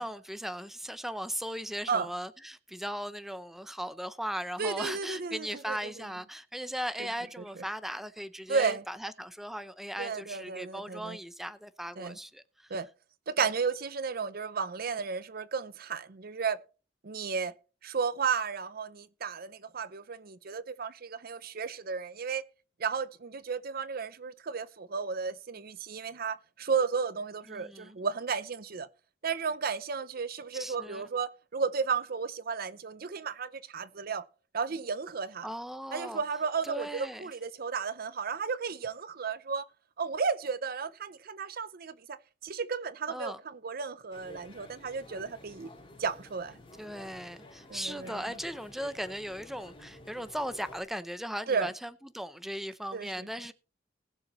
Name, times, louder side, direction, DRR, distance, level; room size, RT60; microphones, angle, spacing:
voice 1, 0.0-12.7 13.4-13.5 27.5-27.9 30.5-31.1 35.4-36.2 36.6-37.3 43.1-43.4 46.8-53.5, equal, ahead, 0.6 m, -38 dB
voice 2, 4.6-5.9 7.0-7.1 8.5-8.8 10.0-11.2 12.0-12.2 12.7-12.9 13.3-16.6 17.0-17.5 17.8-22.5 22.8-28.9 29.2-34.2 34.5-35.5 35.9-39.7 40.0-45.7 46.0-46.6 47.7-48.2 51.5-51.7 52.9-53.3, right 5 dB, 55° right, 0.6 m, -33 dB
sound 1, 44.1-50.8, left 2 dB, 30° left, 3.3 m, -51 dB
20.0 x 7.0 x 3.1 m
head